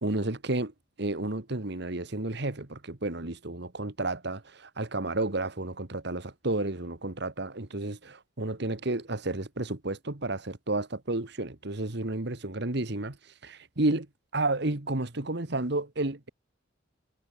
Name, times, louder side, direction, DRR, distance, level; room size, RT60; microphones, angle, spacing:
voice 1, 0.0-0.7 1.0-13.2 13.4-14.1 14.3-16.3, right 2 dB, 60° right, 1.9 m, -31 dB
head